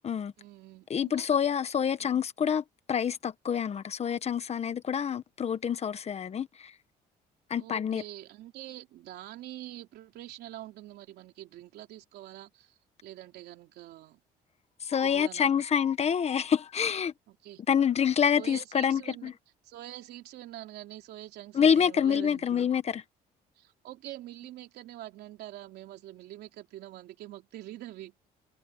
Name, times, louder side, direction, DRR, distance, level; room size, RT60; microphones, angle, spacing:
voice 1, 0.4-1.3 2.0-2.1 7.6-14.2 15.0-15.5 17.3-17.6 18.4-19.3 19.6-22.7 23.6-28.1, right 14 dB, 75° right, 3.3 m, -45 dB
voice 2, 0.9-6.7 7.5-8.0 14.8-17.1 17.7-19.3 21.5-23.0, left 8 dB, 40° left, 1.3 m, -27 dB
cardioid pair, 110°, 17 cm